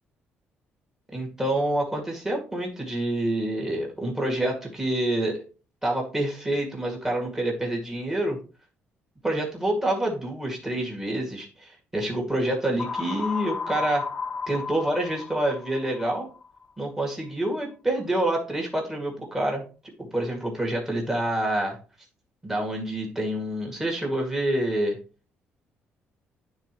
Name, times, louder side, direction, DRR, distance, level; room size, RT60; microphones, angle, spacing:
voice 1, 1.1-5.4 5.8-8.4 9.2-14.1 14.5-16.3 16.8-19.6 20.0-21.8 22.4-25.0, right 1 dB, 10° right, -1 dB, 2.2 m, -27 dB
sound 1, 12.8-16.7, left 5 dB, 20° left, 0.9 m, -33 dB
12.0 x 4.0 x 3.0 m, 0.35 s
cardioid pair, 155°, 4 cm